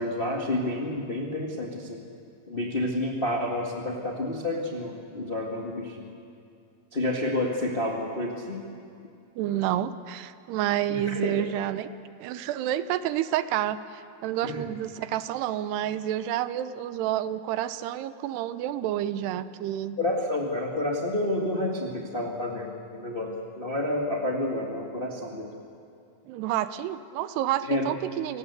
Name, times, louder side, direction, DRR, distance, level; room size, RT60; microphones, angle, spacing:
voice 1, 0.0-2.0 2.5-6.1 6.9-8.6 10.9-11.4 14.4-14.7 20.0-25.5 27.7-27.9, left 1 dB, 35° left, -1 dB, 0.8 m, -29 dB
voice 2, 9.4-11.9 12.2-20.0 26.3-28.4, right 12 dB, 85° right, 13 dB, 2.8 m, -29 dB
28.0 x 19.0 x 8.2 m, 2.5 s
omnidirectional pair, 4.7 m